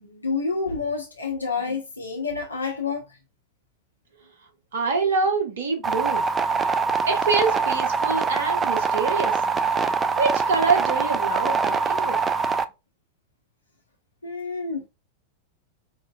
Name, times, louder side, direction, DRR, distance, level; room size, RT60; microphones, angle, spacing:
voice 1, 0.0-3.0 14.2-14.9, left 4 dB, 80° left, 0.7 m, -28 dB
voice 2, 4.7-6.2 7.1-9.4 10.2-12.2, right 4 dB, 60° right, 0.8 m, -25 dB
sound 1, 5.8-12.6, right 5 dB, 20° right, 0.3 m, -23 dB
4.6 x 2.6 x 2.3 m
figure-of-eight pair, 90°, 0 cm